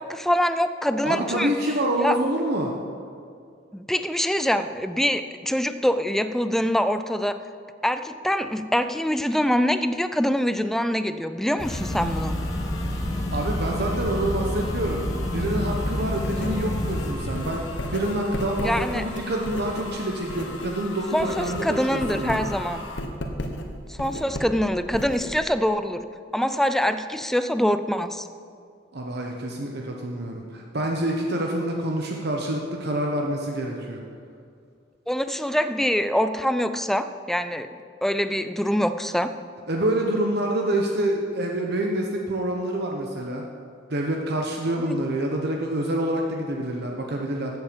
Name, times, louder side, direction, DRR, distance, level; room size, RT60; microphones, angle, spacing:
voice 1, 0.0-1.5 2.0-2.2 3.7-7.4 7.8-12.4 18.6-19.0 21.1-22.9 23.9-26.1 26.3-28.3 35.1-37.7 38.0-39.3, equal, ahead, 11 dB, 0.4 m, -24 dB
voice 2, 1.0-2.7 13.1-22.4 28.9-34.0 39.7-43.5 43.9-47.6, right 1 dB, 55° right, 1 dB, 1.0 m, -27 dB
sound 1, 11.6-23.0, left 3 dB, 85° left, 1.3 m, -41 dB
sound 2, 11.6-17.1, left 1 dB, 20° left, 1.0 m, -28 dB
Writing, 15.8-20.8 21.0-25.7, left 1 dB, 65° left, 1.2 m, -34 dB
14.5 x 8.0 x 5.2 m, 2.3 s
head